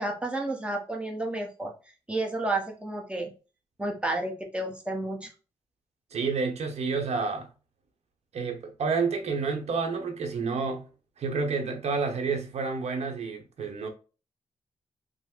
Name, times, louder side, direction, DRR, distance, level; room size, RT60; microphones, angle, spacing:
voice 1, 0.0-1.7 2.1-3.3 3.8-5.3, right 2 dB, 10° right, 0.8 m, -31 dB
voice 2, 6.1-7.5 8.3-10.8 11.2-13.9, right 4 dB, 75° right, 0.8 m, -29 dB
3.0 x 2.0 x 3.6 m
cardioid pair, 70°, 11 cm